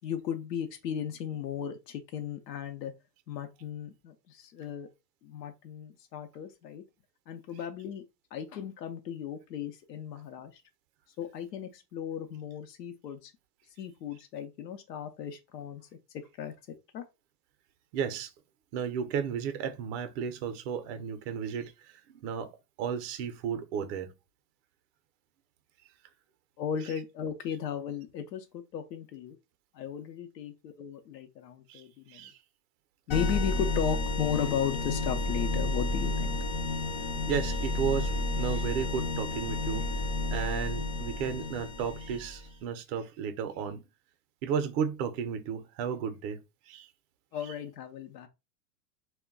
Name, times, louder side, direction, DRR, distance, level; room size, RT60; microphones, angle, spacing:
voice 1, 0.0-2.9 3.3-4.9 5.2-6.8 7.3-8.0 8.3-10.6 11.2-13.3 13.8-15.8 16.1-16.5 16.9-17.0 26.6-29.4 29.7-32.3 33.1-36.4 47.3-48.3, left 8 dB, 85° left, 0.6 m, -36 dB
voice 2, 17.9-18.3 18.7-22.5 22.8-24.1 31.7-31.8 32.1-32.4 36.7-36.8 37.3-39.9 40.3-43.8 44.4-46.9, right 7 dB, 45° right, 0.5 m, -34 dB
sound 1, 33.1-42.5, left 2 dB, 30° left, 0.4 m, -31 dB
2.2 x 2.2 x 3.6 m
hypercardioid pair, 120°, 48 cm